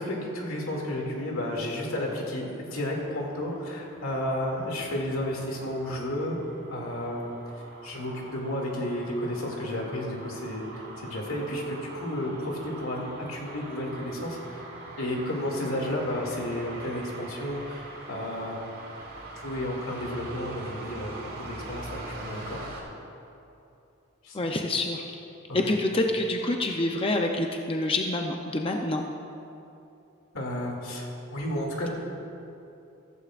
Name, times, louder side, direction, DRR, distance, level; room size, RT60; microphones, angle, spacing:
voice 1, 0.0-6.4 6.7-7.4 7.8-14.6 15.0-18.6 19.4-22.7 24.2-24.4 25.5-25.7 30.3-31.9, left 1 dB, 90° left, -1 dB, 2.4 m, -32 dB
sound 1, 2.9-22.8, right 2 dB, 65° right, 3.0 m, -43 dB
voice 2, 24.3-25.0 25.5-29.1, left 2 dB, 25° left, 2 dB, 0.6 m, -27 dB
15.0 x 15.0 x 2.5 m, 2.8 s
head